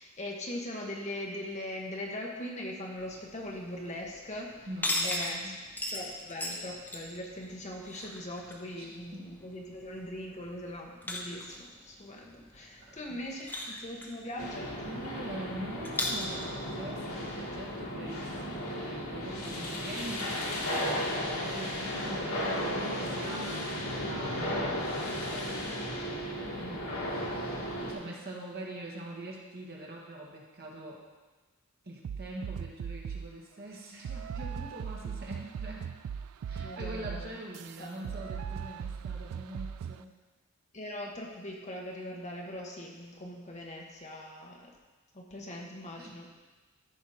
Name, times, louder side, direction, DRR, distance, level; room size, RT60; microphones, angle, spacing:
voice 1, 0.0-4.7 5.0-5.5 5.9-14.7 17.9-18.1 18.4-18.6 25.9-26.1 26.5-26.9 36.6-37.4 37.8-38.4 40.7-44.7 45.1-46.3, left 1 dB, 30° left, -1 dB, 1.2 m, -41 dB
sound 1, 2.9-17.3, left 1 dB, 10° left, 0.9 m, -40 dB
voice 2, 4.7-5.6 8.8-9.3 12.8-13.2 14.8-25.6 26.5-31.0 31.8-35.9 36.5-40.1 46.0-46.2, right 1 dB, 45° right, -2 dB, 1.7 m, -44 dB
sound 2, 14.4-27.9, equal, 75° left, 1.9 m, -35 dB
sound 3, 32.0-33.3 34.0-40.0, right 7 dB, 75° right, 0.3 m, -39 dB
14.0 x 5.1 x 4.2 m, 1.3 s
head